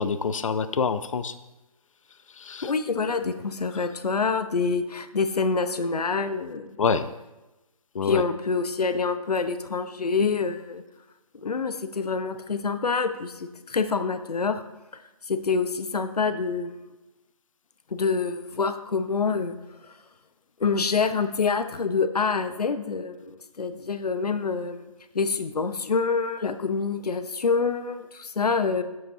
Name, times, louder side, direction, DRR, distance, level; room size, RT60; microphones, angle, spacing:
voice 1, 0.0-1.3 2.5-2.7 6.8-7.0 8.0-8.2, left 5 dB, 60° left, 12 dB, 0.5 m, -25 dB
voice 2, 2.6-6.8 8.0-10.8 11.3-14.6 15.3-16.8 17.9-19.6 19.8-19.9 20.6-24.8 25.1-28.8, left 4 dB, 90° left, 9 dB, 0.8 m, -26 dB
10.0 x 7.6 x 2.7 m, 1.0 s
hypercardioid pair, 170°, 19 cm